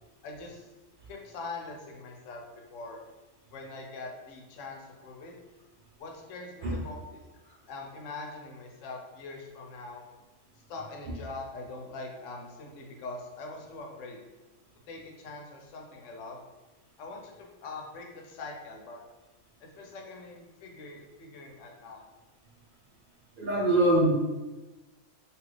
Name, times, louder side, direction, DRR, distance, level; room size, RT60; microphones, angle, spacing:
voice 1, 0.2-0.7 1.1-2.4 2.7-3.0 3.5-5.3 6.0-7.2 7.7-10.0 10.7-14.2 14.9-16.4 17.0-19.0 19.6-22.0, left 3 dB, 80° left, 1 dB, 0.9 m, -43 dB
voice 2, 23.4-24.1, right 1 dB, 55° right, -4 dB, 0.7 m, -23 dB
2.9 x 2.4 x 3.1 m, 1.1 s
omnidirectional pair, 1.3 m